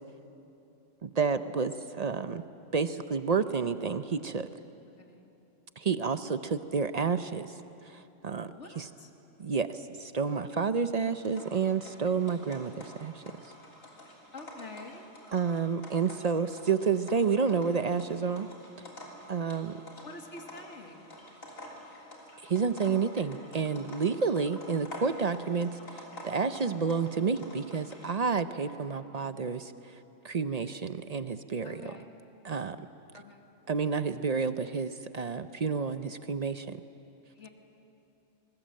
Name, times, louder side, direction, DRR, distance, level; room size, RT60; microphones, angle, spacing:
voice 1, 1.0-2.4 2.7-4.5 5.8-7.5 7.8-8.8 9.4-13.2 15.3-18.5 19.3-19.8 22.4-30.0 30.2-31.9 32.4-32.9 33.7-36.8, right 5 dB, 45° right, 11 dB, 0.5 m, -30 dB
voice 2, 4.9-5.3 8.6-9.1 14.3-15.1 20.0-21.1 24.7-24.9 26.6-26.8 31.6-32.1 33.1-33.5 37.3-37.5, left 3 dB, 60° left, 3 dB, 2.3 m, -47 dB
sound 1, 11.2-28.2, left 1 dB, 90° left, 3.7 m, -49 dB
26.0 x 21.0 x 7.6 m, 2.9 s
omnidirectional pair, 1.3 m